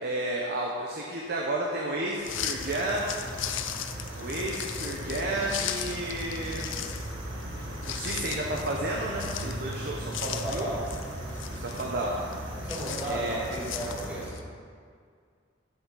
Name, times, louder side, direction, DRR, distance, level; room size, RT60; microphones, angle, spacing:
voice 1, 0.0-3.1 4.1-6.7 7.9-10.7 11.6-12.2 13.1-13.4, right 1 dB, 55° right, -2 dB, 0.9 m, -32 dB
sound 1, 2.2-14.4, left 9 dB, 80° left, 0.5 m, -38 dB
sound 2, 2.3-14.3, right 1 dB, 75° right, 1.7 m, -38 dB
voice 2, 10.3-10.8 12.6-14.4, right 1 dB, 10° right, -8 dB, 2.6 m, -34 dB
10.0 x 7.7 x 3.9 m, 2.1 s
head